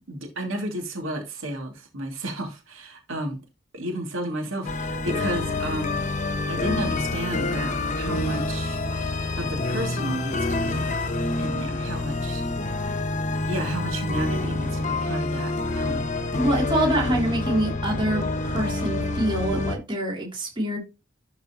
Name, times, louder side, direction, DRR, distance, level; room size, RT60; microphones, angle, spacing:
voice 1, 0.1-3.4 3.7-6.0 6.5-8.8 9.4-11.0 11.4-12.4 12.8-13.0 13.5-16.1, right 1 dB, 80° right, 2.6 m, -32 dB
sound 1, 4.6-19.8, left 2 dB, 40° left, 1.0 m, -27 dB
voice 2, 16.3-20.8, right 1 dB, 25° right, 3.0 m, -25 dB
12.0 x 4.8 x 3.0 m
head